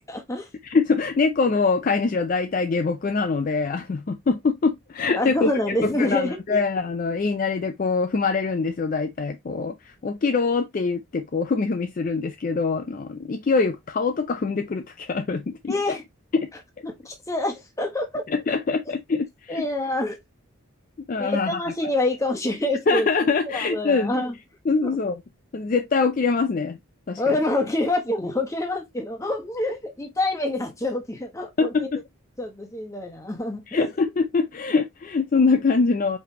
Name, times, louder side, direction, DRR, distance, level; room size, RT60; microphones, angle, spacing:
voice 1, 0.1-0.5 5.1-6.6 15.7-16.0 16.9-18.2 19.5-20.2 21.2-23.1 23.5-24.3 24.8-24.9 27.2-31.9 32.4-33.9, left 2 dB, 15° left, 0.9 m, -26 dB
voice 2, 0.6-5.5 5.8-16.0 16.3-16.5 18.3-19.7 21.1-21.6 22.9-24.1 24.7-25.2 25.5-26.8 27.1-27.4 31.6-32.0 33.7-36.2, left 4 dB, 40° left, 0.3 m, -24 dB
4.9 x 3.2 x 2.8 m
head